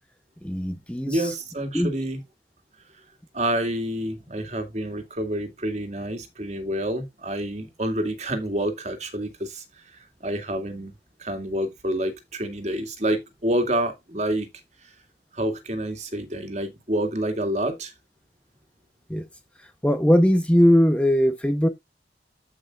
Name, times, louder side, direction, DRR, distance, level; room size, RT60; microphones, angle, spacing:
voice 1, 0.4-1.3 1.7-1.9 19.1-19.3 19.8-21.7, equal, 5° left, 0.9 m, -20 dB
voice 2, 1.0-2.2 3.3-9.6 9.9-10.9 11.2-14.5 15.3-17.9, right 1 dB, 40° right, 2.3 m, -28 dB
14.0 x 5.8 x 2.5 m
head